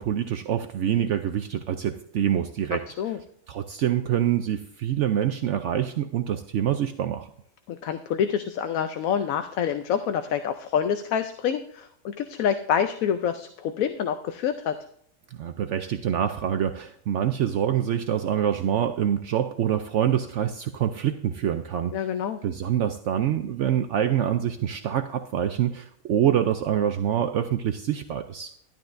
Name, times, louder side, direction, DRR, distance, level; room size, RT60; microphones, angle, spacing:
voice 1, 0.0-2.8 3.5-7.3 15.4-22.1 22.4-28.5, right 10 dB, 65° right, 7 dB, 0.9 m, -26 dB
voice 2, 2.7-3.2 7.7-14.8 21.9-22.4, left 8 dB, 85° left, 8 dB, 1.1 m, -27 dB
12.0 x 12.0 x 2.6 m, 0.67 s
omnidirectional pair, 1.4 m